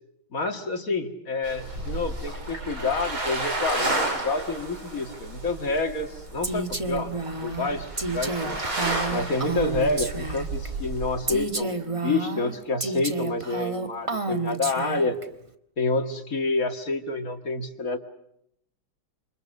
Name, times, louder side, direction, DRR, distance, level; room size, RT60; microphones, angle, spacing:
voice 1, 0.3-8.6 9.1-15.2 15.8-18.0, left 3 dB, 40° left, 6 dB, 2.3 m, -28 dB
sound 1, 1.4-11.4, right 2 dB, 75° right, 6.4 m, -32 dB
Female speech woman speaking, 6.4-10.7 11.3-15.2, right 3 dB, 20° right, 1.3 m, -30 dB
28.0 x 27.5 x 6.6 m, 0.76 s
omnidirectional pair, 2.3 m